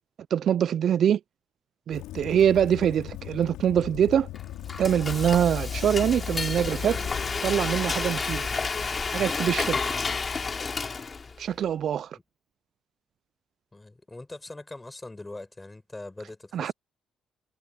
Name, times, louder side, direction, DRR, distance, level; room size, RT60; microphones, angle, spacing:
voice 1, 0.3-1.2 1.9-4.3 4.8-7.0 7.4-8.5 9.1-9.8 11.4-12.1 16.5-16.7, right 9 dB, 65° right, 0.3 m, -24 dB
Waves surf / Splash splatter / Trickle dribble, 1.9-7.7, left 15 dB, 90° left, 3.2 m, -40 dB
Frying (food), 4.3-11.4, left 4 dB, 35° left, 3.0 m, -30 dB
voice 2, 13.7-16.7, left 2 dB, 15° left, 5.1 m, -42 dB
cardioid pair, 75°, 0 cm